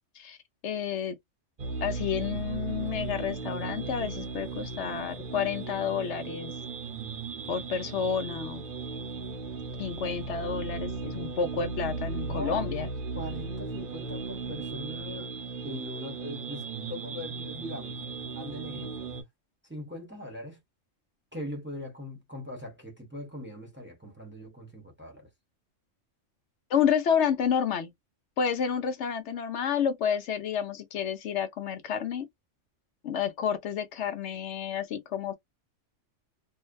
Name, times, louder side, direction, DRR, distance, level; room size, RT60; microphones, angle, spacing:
voice 1, 0.6-1.1 1.8-6.5 7.5-8.6 9.8-12.9 26.7-27.9 28.4-32.3 33.0-35.4, left 7 dB, 70° left, 0.9 m, -30 dB
sound 1, 1.6-19.2, right 4 dB, 50° right, 0.7 m, -36 dB
voice 2, 12.3-12.9 13.1-15.3 15.6-18.0 18.3-19.1 19.6-20.6 21.3-25.3, left 1 dB, 10° right, 0.8 m, -41 dB
2.6 x 2.1 x 2.3 m
omnidirectional pair, 1.3 m